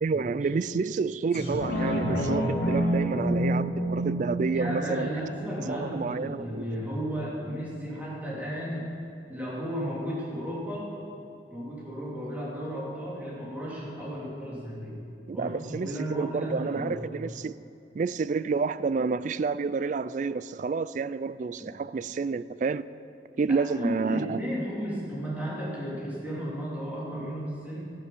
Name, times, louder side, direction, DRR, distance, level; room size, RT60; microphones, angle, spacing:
voice 1, 0.0-5.1 5.7-6.6 15.3-17.5 17.9-22.9 23.4-24.4, right 4 dB, 45° right, 16 dB, 0.3 m, -29 dB
sound 1, 1.3-6.4 6.8-6.9, right 1 dB, 75° left, 2.5 m, -29 dB
voice 2, 4.5-8.9 9.3-10.9 11.5-15.0 15.3-17.0 21.6-21.7 23.5-27.9, equal, 10° right, -7 dB, 3.1 m, -34 dB
13.0 x 11.0 x 5.5 m, 2.7 s
head